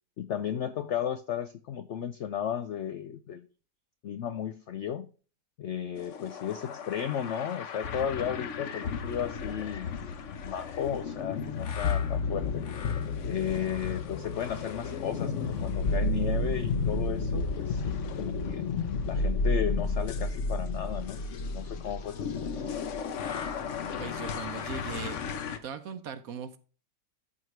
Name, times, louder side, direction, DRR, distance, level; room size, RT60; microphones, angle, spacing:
voice 1, 0.2-3.5 4.0-5.1 5.6-12.7 13.2-18.6 19.0-21.2 21.5-22.8, left 9 dB, 90° left, 0.6 m, -34 dB
sound 1, 6.0-25.6, left 4 dB, 55° left, 1.0 m, -32 dB
voice 2, 24.0-25.2 25.6-26.6, right 7 dB, 60° right, 1.2 m, -39 dB
13.5 x 4.7 x 3.2 m
omnidirectional pair, 1.8 m